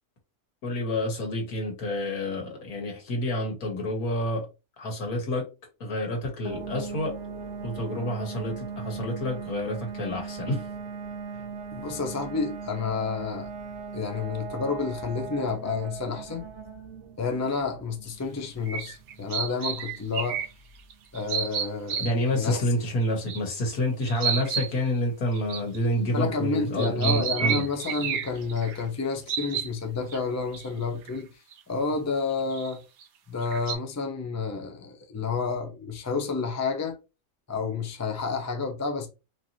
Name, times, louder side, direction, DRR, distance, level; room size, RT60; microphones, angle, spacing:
voice 1, 0.6-4.5 4.8-5.5 5.8-7.1 7.6-10.6 22.0-27.6, equal, 80° left, 1.8 m, -28 dB
sound 1, 6.4-21.0, right 5 dB, 60° right, 0.9 m, -39 dB
voice 2, 11.7-13.5 13.9-16.4 17.2-20.4 21.1-22.0 22.3-22.6 26.1-31.3 31.7-32.8 33.3-37.0 37.5-39.1, left 4 dB, 20° left, 0.4 m, -30 dB
sound 2, 18.1-18.2 18.7-20.5 20.9-22.4 23.1-23.4 23.7-23.8 24.0-24.7 25.3-26.2 26.8-28.8 29.3-29.7 30.1-30.2 30.5-30.7 31.1-31.2 31.5-31.6 32.5-33.0 33.4-33.8, right 8 dB, 80° right, 1.2 m, -30 dB
4.5 x 3.0 x 2.7 m
omnidirectional pair, 1.5 m